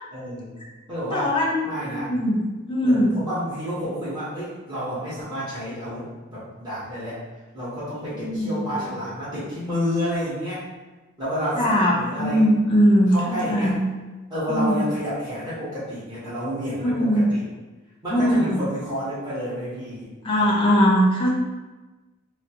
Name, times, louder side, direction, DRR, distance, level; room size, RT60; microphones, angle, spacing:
voice 1, 0.1-0.5 0.9-1.3 1.6-2.1 2.8-7.2 7.5-10.7 11.2-12.5 13.1-13.8 14.3-17.4 18.0-20.7, equal, 20° right, -13 dB, 1.2 m, -30 dB
voice 2, 1.1-2.4 2.7-3.2 8.2-8.7 11.6-13.8 14.5-14.8 16.8-17.3 18.1-18.6 20.2-21.3, equal, 25° left, -4 dB, 0.7 m, -20 dB
4.1 x 2.0 x 2.9 m, 1.2 s
head